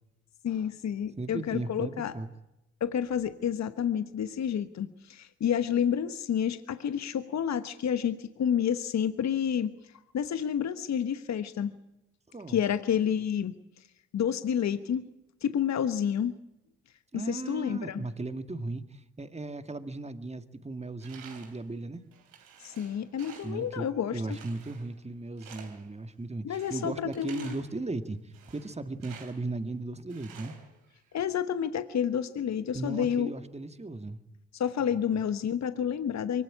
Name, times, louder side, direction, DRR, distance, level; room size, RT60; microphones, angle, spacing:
voice 1, 0.4-2.1 2.8-9.7 10.1-11.7 12.5-13.5 14.1-15.0 15.4-16.3 17.1-18.0 22.6-24.4 26.4-27.5 31.1-33.3 34.5-36.4, left 8 dB, 55° left, 12 dB, 1.2 m, -29 dB
voice 2, 1.2-2.3 12.3-12.6 17.1-22.0 23.4-30.5 32.7-34.2 35.1-35.2, right 2 dB, 20° right, 10 dB, 2.0 m, -37 dB
Tools, 21.0-21.7 22.1-23.7 24.3-25.0 25.4-25.9 26.5-27.8 28.3-29.5 30.1-31.2, right 7 dB, 75° right, 3.3 m, -51 dB
23.5 x 17.0 x 9.9 m, 0.89 s
hypercardioid pair, 45°, 33 cm